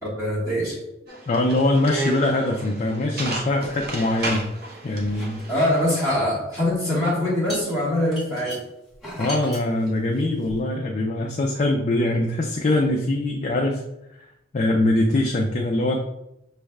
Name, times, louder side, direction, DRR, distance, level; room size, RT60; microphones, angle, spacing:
voice 1, 0.0-0.8 5.5-8.6, left 1 dB, 15° right, -9 dB, 1.5 m, -23 dB
sound 1, 1.1-6.0, right 2 dB, 50° right, 0.8 m, -33 dB
voice 2, 1.3-4.5 4.8-5.4 9.2-13.8 14.5-16.0, left 1 dB, 35° left, 0 dB, 0.4 m, -22 dB
sound 2, 3.6-4.6 4.9-6.0 6.7-6.9 7.5-10.6, equal, ahead, 1.5 m, -38 dB
6.1 x 3.3 x 2.3 m, 0.87 s
head